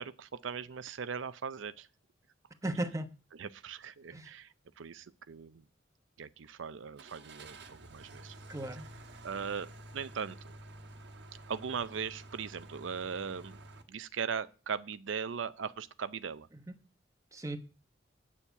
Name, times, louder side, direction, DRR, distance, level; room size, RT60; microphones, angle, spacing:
voice 1, 0.0-1.9 3.4-5.6 6.2-8.3 9.2-10.5 11.5-13.6 13.9-16.5, right 6 dB, 85° right, 0.5 m, -39 dB
voice 2, 2.6-3.1 4.1-4.3 8.5-8.9 16.5-16.8 17.3-17.6, right 1 dB, 15° right, 1.0 m, -36 dB
Car / Engine starting, 7.0-13.8, right 1 dB, 65° right, 1.3 m, -50 dB
8.5 x 7.2 x 8.1 m
head